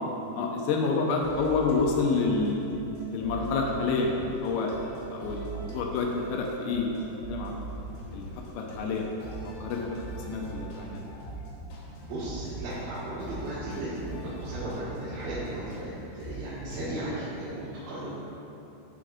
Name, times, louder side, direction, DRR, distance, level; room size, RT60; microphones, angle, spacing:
voice 1, 0.4-2.7 3.1-7.7 8.1-8.3 8.5-9.1 9.4-11.0, left 4 dB, 85° left, 0 dB, 2.5 m, -28 dB
sound 1, 1.2-17.0, right 3 dB, 70° left, 2.7 m, -42 dB
voice 2, 12.0-15.9 16.1-18.1, right 1 dB, 85° right, -13 dB, 4.3 m, -35 dB
14.5 x 4.9 x 2.6 m, 2.8 s
omnidirectional pair, 5.6 m